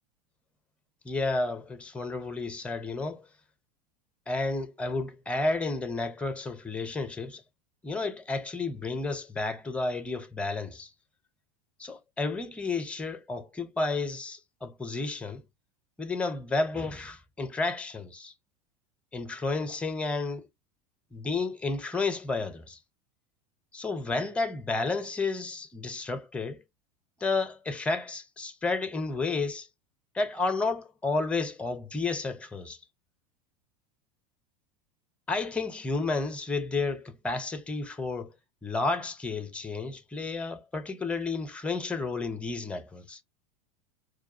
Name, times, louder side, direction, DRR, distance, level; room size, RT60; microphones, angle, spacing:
voice 1, 1.0-3.2 4.3-7.4 7.8-10.9 11.8-15.4 16.0-18.3 19.1-20.5 21.1-22.8 23.7-26.6 27.2-29.7 30.1-32.8 35.3-38.3 38.6-43.2, left 3 dB, 5° left, 0.5 m, -31 dB
4.6 x 2.2 x 2.6 m
figure-of-eight pair, 80°, 20 cm